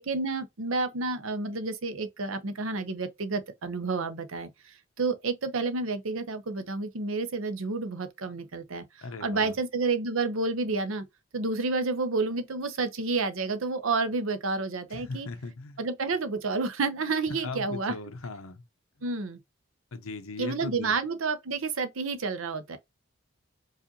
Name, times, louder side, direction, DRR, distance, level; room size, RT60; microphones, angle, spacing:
voice 1, 0.0-4.5 5.0-8.8 9.2-11.0 11.3-15.3 15.8-17.9 19.0-19.4 20.4-22.8, right 3 dB, 75° right, 0.7 m, -30 dB
voice 2, 9.0-9.5 14.9-15.8 17.3-18.6 19.9-20.9, left 3 dB, 90° left, 0.8 m, -38 dB
4.9 x 2.5 x 2.7 m
head